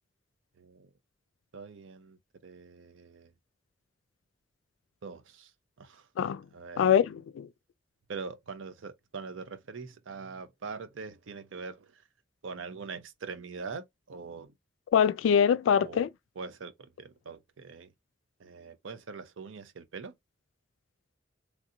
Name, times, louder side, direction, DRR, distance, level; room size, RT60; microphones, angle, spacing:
voice 1, 0.6-0.9 1.5-3.3 5.0-5.5 5.8-6.1 6.5-6.8 8.1-12.1 12.4-14.6 15.7-16.1 16.4-17.9 18.4-20.1, right 4 dB, 85° right, 0.5 m, -43 dB
voice 2, 6.8-7.5 14.9-16.1, left 8 dB, 90° left, 0.3 m, -24 dB
3.2 x 2.6 x 2.6 m
head